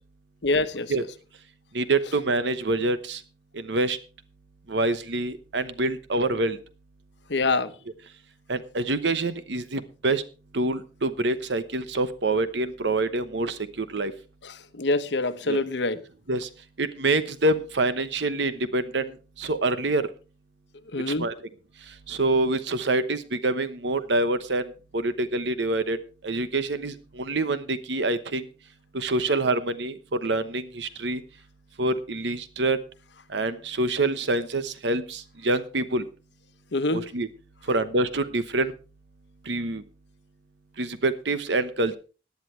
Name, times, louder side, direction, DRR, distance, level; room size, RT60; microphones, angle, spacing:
voice 1, 0.4-0.9 7.3-7.7 14.4-16.0 20.9-21.3 36.7-37.1, left 2 dB, 70° left, 11 dB, 1.0 m, -25 dB
voice 2, 1.7-3.2 3.5-4.0 4.7-6.6 8.5-10.2 10.5-14.1 15.5-15.6 16.3-16.5 16.8-19.1 19.4-20.1 21.1-21.3 22.1-26.0 26.2-28.5 28.9-31.2 31.8-32.8 33.3-36.0 36.9-37.3 37.7-38.7 39.5-39.8 40.8-42.0, right 2 dB, 70° right, 12 dB, 1.0 m, -26 dB
17.0 x 10.5 x 3.3 m, 0.34 s
head